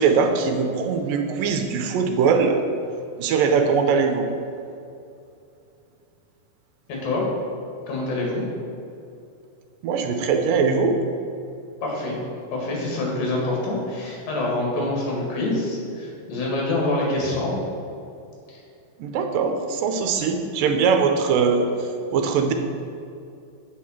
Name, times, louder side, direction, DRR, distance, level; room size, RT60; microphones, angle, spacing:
voice 1, 0.0-2.6 3.2-4.3 9.8-11.0 19.0-22.5, right 5 dB, 80° right, 5 dB, 2.3 m, -21 dB
voice 2, 6.9-7.3 7.9-8.4 11.8-12.2 12.5-17.6 18.5-18.6, left 2 dB, 75° left, -2 dB, 3.6 m, -26 dB
7.7 x 4.8 x 7.2 m, 2.5 s
omnidirectional pair, 4.1 m